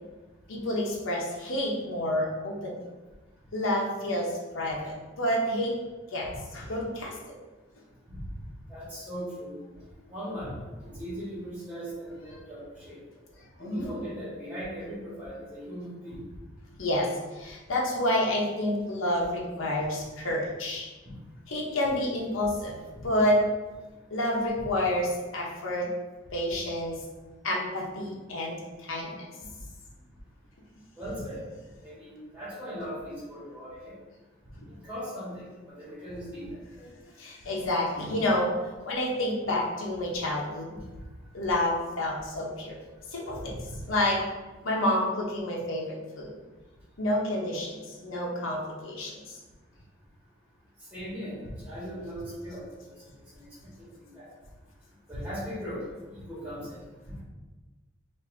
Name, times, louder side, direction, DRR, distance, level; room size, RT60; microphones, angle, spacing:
voice 1, 0.5-2.7 3.5-5.7 6.1-6.3 6.5-7.1 13.6-14.0 16.8-20.9 21.5-22.8 23.0-23.4 24.1-25.9 26.3-27.0 27.4-29.2 37.2-38.5 38.9-40.8 41.3-42.8 43.1-43.5 43.9-44.2 44.6-46.3 47.0-49.4, left 1 dB, 90° left, -3 dB, 0.9 m, -29 dB
voice 2, 8.7-9.5 10.1-10.6 10.9-13.0 13.6-16.2 31.0-31.4 31.8-33.9 34.8-36.5 43.6-43.8 50.9-51.3 51.6-52.6 53.3-53.4 54.0-54.3 55.1-56.8, equal, 5° right, -8 dB, 1.5 m, -38 dB
5.3 x 2.7 x 2.7 m, 1.2 s
head